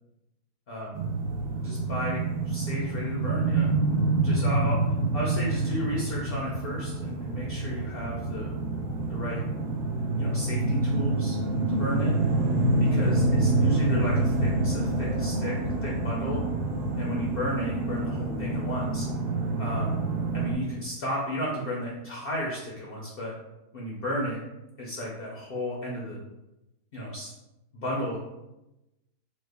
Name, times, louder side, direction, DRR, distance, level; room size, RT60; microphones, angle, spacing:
voice 1, 0.7-1.0 1.6-3.7 4.2-4.8 5.1-8.5 9.1-9.4 10.2-11.4 11.7-12.1 12.8-16.4 17.0-19.1 19.6-20.0 20.3-23.3 23.7-24.4 24.8-26.2 26.9-27.3 27.7-28.2, equal, 65° left, -4 dB, 0.5 m, -33 dB
sound 1, 0.9-20.5, right 2 dB, 80° right, 1.1 m, -27 dB
3.2 x 2.1 x 3.4 m, 0.96 s
omnidirectional pair, 1.7 m